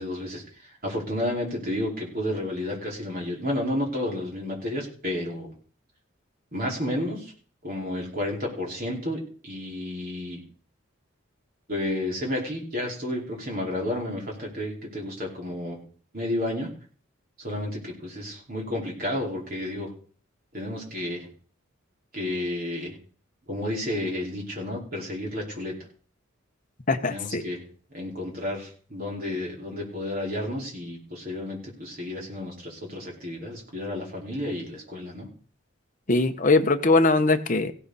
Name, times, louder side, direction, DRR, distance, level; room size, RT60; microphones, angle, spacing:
voice 1, 0.0-5.5 6.5-7.3 7.6-10.4 11.7-15.8 16.1-16.7 17.4-19.9 20.5-21.3 22.1-22.9 23.5-25.7 27.0-27.6 27.9-35.3, left 1 dB, 45° right, -2 dB, 5.0 m, -31 dB
voice 2, 26.9-27.4 36.1-37.7, left 3 dB, 40° left, 7 dB, 1.1 m, -21 dB
16.0 x 11.5 x 4.2 m, 0.43 s
head